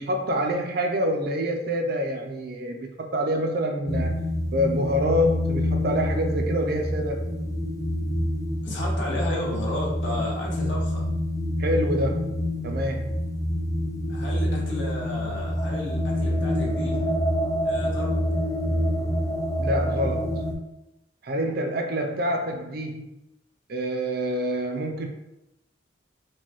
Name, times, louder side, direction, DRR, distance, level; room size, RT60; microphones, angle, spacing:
voice 1, 0.0-4.2 4.5-7.3 11.6-12.4 12.6-13.2 19.6-20.4 21.2-23.1 23.7-25.1, equal, 50° right, 4 dB, 0.5 m, -26 dB
sound 1, 3.9-20.5, left 1 dB, 15° left, 0.3 m, -27 dB
voice 2, 8.6-11.0 14.1-16.9 17.6-18.2, left 1 dB, 70° left, -4 dB, 1.1 m, -33 dB
4.5 x 2.3 x 3.0 m, 0.91 s
head